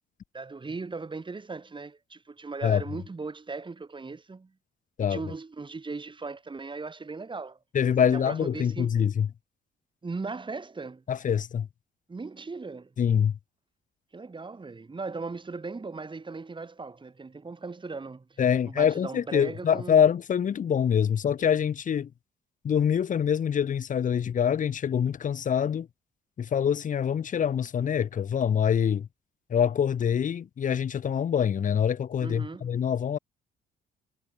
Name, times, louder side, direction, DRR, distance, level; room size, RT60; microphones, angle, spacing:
voice 1, 0.3-4.5 5.0-7.6 8.0-8.9 10.0-11.0 12.1-12.9 14.1-20.0 32.2-32.7, right 4 dB, 25° right, 2.4 m, -38 dB
voice 2, 7.7-9.3 11.1-11.7 13.0-13.4 18.4-22.1 22.6-25.9 26.4-29.1 29.5-33.2, left 8 dB, 40° left, 0.7 m, -25 dB
cardioid pair, 90°, 20 cm